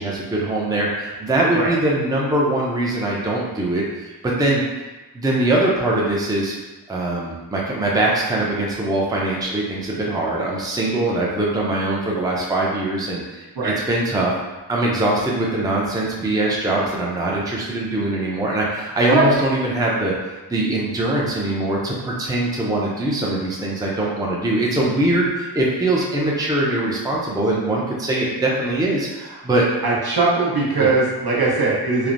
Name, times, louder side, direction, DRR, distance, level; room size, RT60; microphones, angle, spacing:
voice 1, 0.0-4.6 5.1-6.5 6.9-14.3 14.7-20.1 20.5-29.7 30.8-30.9, right 2 dB, 10° right, -4 dB, 0.5 m, -22 dB
voice 2, 29.8-32.1, right 3 dB, 60° right, -5 dB, 0.9 m, -19 dB
3.2 x 2.0 x 2.5 m, 1.1 s
cardioid pair, 55°, 42 cm